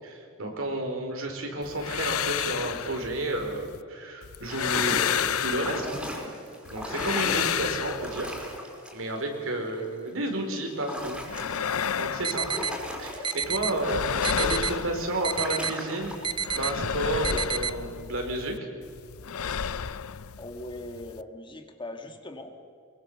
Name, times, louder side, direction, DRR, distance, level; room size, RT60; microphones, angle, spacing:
voice 1, 0.0-5.9 6.7-8.3 8.9-11.2 12.0-12.5 13.0-16.1 16.5-18.5, right 1 dB, 70° right, 3 dB, 4.6 m, -31 dB
sound 1, 1.6-3.8 4.2-6.3 6.7-8.6 11.0-13.2 13.4-15.7 16.0-18.6 18.8-21.2, left 8 dB, 80° left, 0.6 m, -31 dB
sound 2, 4.5-9.2 9.6-9.9 10.7-11.8 12.3-16.6, equal, 5° right, 5.0 m, -38 dB
sound 3, 12.2-12.7 13.2-13.7 14.2-14.7 15.2-15.7 16.2-16.7 17.2-17.7, right 7 dB, 20° right, 0.6 m, -29 dB
voice 2, 20.4-22.5, left 1 dB, 25° left, 5 dB, 1.8 m, -40 dB
23.5 x 22.5 x 6.9 m, 2.2 s
head